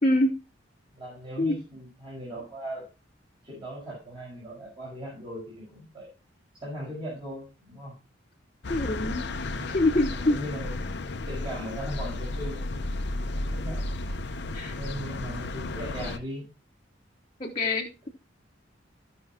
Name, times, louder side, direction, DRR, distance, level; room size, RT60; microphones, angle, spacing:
voice 1, 0.0-0.3 1.4-1.6 8.7-10.4 14.5-14.8 17.4-18.1, left 1 dB, 30° left, -2 dB, 1.2 m, -26 dB
voice 2, 0.9-2.8 3.4-6.1 6.6-7.9 9.4-13.1 13.3-13.8 14.8-16.5, equal, 25° right, -6 dB, 5.2 m, -39 dB
sound 1, 8.6-16.2, left 2 dB, 60° left, 0.8 m, -33 dB
15.0 x 6.2 x 2.9 m, 0.31 s
head